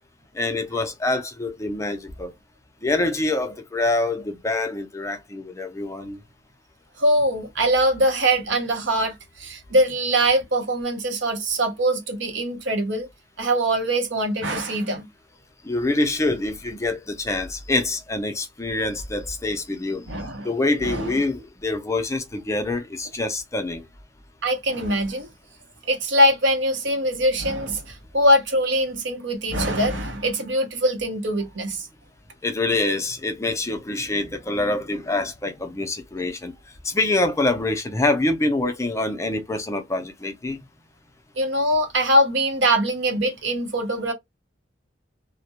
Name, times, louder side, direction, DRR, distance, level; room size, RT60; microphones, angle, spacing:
voice 1, 0.3-2.3 2.8-6.2 15.6-20.1 20.4-23.8 32.4-36.5 36.8-40.6, left 2 dB, 15° left, 0.4 m, -25 dB
voice 2, 7.0-13.1 13.4-15.1 20.1-20.5 20.8-21.2 24.4-25.3 25.9-31.9 41.4-44.1, right 1 dB, 75° right, 0.7 m, -22 dB
2.2 x 2.1 x 2.8 m
head